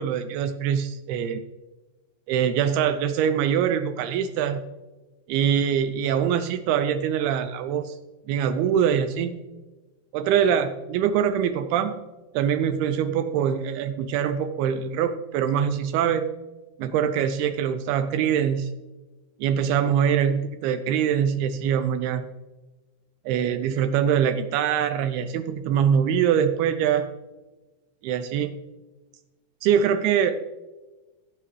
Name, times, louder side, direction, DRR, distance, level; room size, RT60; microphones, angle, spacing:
voice 1, 0.0-1.4 2.3-4.6 5.3-8.0 8.3-9.4 10.1-12.0 12.3-16.3 16.8-18.7 19.4-22.3 23.3-27.1 28.0-28.6 29.6-30.4, right 8 dB, 85° right, 9 dB, 2.2 m, -23 dB
17.0 x 8.1 x 3.1 m, 1.2 s
omnidirectional pair, 5.0 m